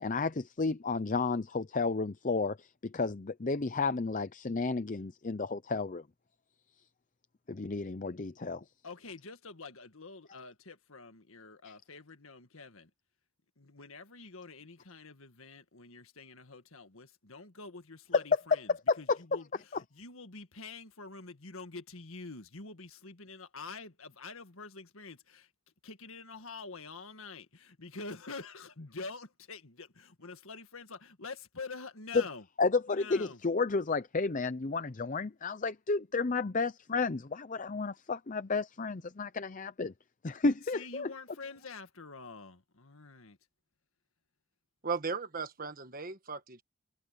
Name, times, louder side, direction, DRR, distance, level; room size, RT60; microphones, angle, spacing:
voice 1, 0.0-6.0 7.5-8.6 18.1-18.2 18.7-19.2 32.1-32.2 32.6-39.9 40.2-41.1, left 4 dB, 35° left, 0.6 m, -31 dB
voice 2, 8.8-12.9 13.6-25.5 25.8-32.4 32.9-33.4 40.7-43.4, left 4 dB, 65° left, 1.8 m, -47 dB
voice 3, 44.8-46.6, right 5 dB, 40° right, 1.3 m, -36 dB
head